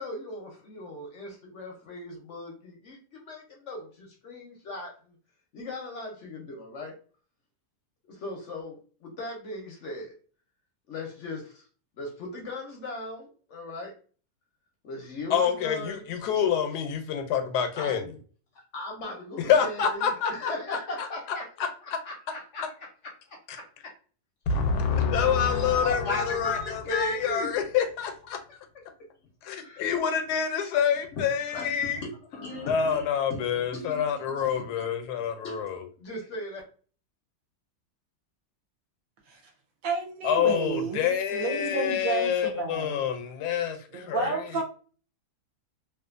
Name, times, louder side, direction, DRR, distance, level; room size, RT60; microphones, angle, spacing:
voice 1, 0.0-4.9 5.5-6.9 8.1-10.1 10.9-11.6 12.0-13.9 14.8-16.1 17.8-18.0 18.7-22.9 23.3-23.6 25.8-27.5 29.6-29.9 31.5-31.7 32.3-34.8 35.2-36.6, left 2 dB, 60° left, 0.8 m, -37 dB
voice 2, 15.3-18.1 19.4-21.1 23.5-23.6 24.5-28.4 29.4-32.0 32.7-35.9 40.2-44.4, left 7 dB, 85° left, 1.1 m, -27 dB
voice 3, 39.8-43.0 43.9-44.6, right 5 dB, 70° right, 0.9 m, -31 dB
2.5 x 2.4 x 2.4 m
omnidirectional pair, 1.7 m